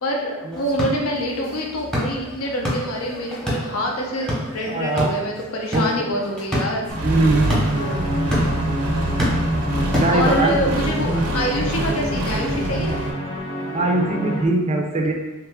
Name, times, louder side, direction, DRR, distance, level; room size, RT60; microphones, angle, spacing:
voice 1, 0.0-6.9 10.1-13.0, equal, 75° left, 0 dB, 0.6 m, -26 dB
sound 1, 0.5-10.7, equal, 5° left, 0.8 m, -29 dB
voice 2, 4.7-5.1 5.7-6.1 7.0-7.4 10.0-10.7 11.0-11.3 13.6-15.1, right 2 dB, 30° right, 2 dB, 0.4 m, -21 dB
Accelerating revving vroom, 6.9-13.1, right 1 dB, 90° right, 0.5 m, -24 dB
sound 2, 7.7-14.5, left 1 dB, 30° left, 0.5 m, -29 dB
3.0 x 2.4 x 3.5 m, 1.1 s
head